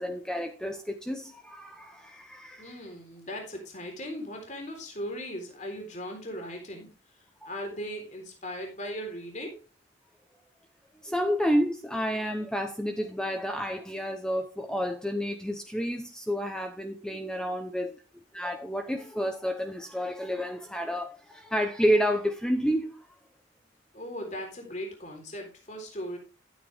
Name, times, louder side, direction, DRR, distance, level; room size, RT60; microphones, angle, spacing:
voice 1, 0.0-2.8 7.4-7.5 11.0-18.0 18.3-23.0, equal, 5° left, 0.8 m, -30 dB
voice 2, 2.6-6.9 7.5-9.6 23.9-26.2, equal, 40° left, 3.7 m, -38 dB
13.0 x 8.9 x 3.5 m
head